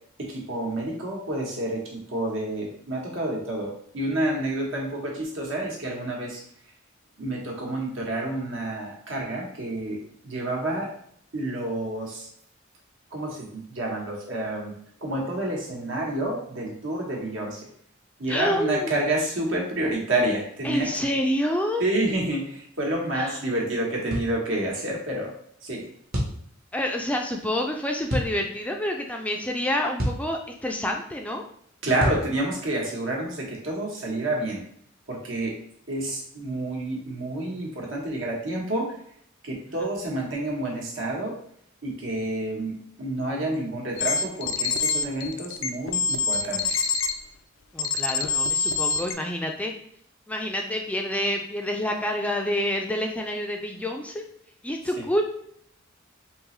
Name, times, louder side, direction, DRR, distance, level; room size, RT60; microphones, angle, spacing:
voice 1, 0.2-6.4 7.2-10.9 11.3-12.3 13.1-14.7 15.0-17.6 18.2-20.9 21.8-25.3 25.6-25.8 31.8-34.6 35.1-35.5 35.9-38.9 39.4-41.3 41.8-46.8, right 1 dB, 75° right, -1 dB, 1.2 m, -29 dB
voice 2, 18.3-19.0 20.6-21.8 23.1-23.4 26.7-31.4 47.7-49.7 50.3-54.2 54.6-55.2, left 1 dB, 5° left, 2 dB, 0.3 m, -28 dB
sound 1, 24.1-24.3 26.1-26.4 28.1-28.3 30.0-30.3 32.0-32.3, equal, 50° right, 0.9 m, -26 dB
sound 2, 44.0-47.1 47.8-49.1, left 4 dB, 80° left, 0.4 m, -25 dB
3.7 x 2.9 x 3.1 m, 0.66 s
head